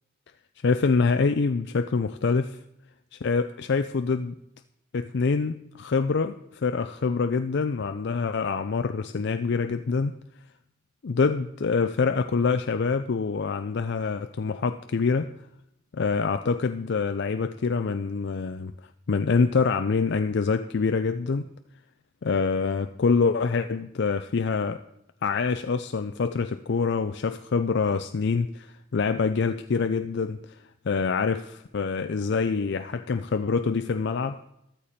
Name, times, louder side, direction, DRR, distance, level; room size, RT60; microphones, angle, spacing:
voice 1, 0.6-2.6 3.2-4.3 4.9-10.2 11.0-15.3 15.9-18.7 19.1-21.5 22.2-24.8 25.2-30.6 30.8-34.4, left 4 dB, 60° left, 9 dB, 0.5 m, -25 dB
13.5 x 13.0 x 4.3 m, 0.81 s
head